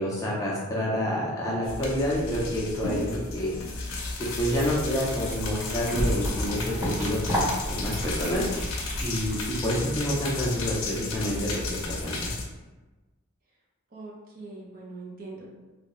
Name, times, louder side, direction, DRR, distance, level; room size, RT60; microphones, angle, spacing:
voice 1, 0.0-3.0 3.3-3.5 4.4-8.4 9.0-9.4 9.6-11.6 11.9-12.3, equal, 15° left, -5 dB, 0.6 m, -28 dB
sound 1, 1.6-12.4, left 3 dB, 75° left, 0.6 m, -33 dB
sound 2, 4.3-9.6, equal, 20° right, 1.4 m, -32 dB
voice 2, 6.5-7.1 13.9-15.5, right 3 dB, 40° right, -2 dB, 0.6 m, -42 dB
3.1 x 2.8 x 3.0 m, 1.2 s
head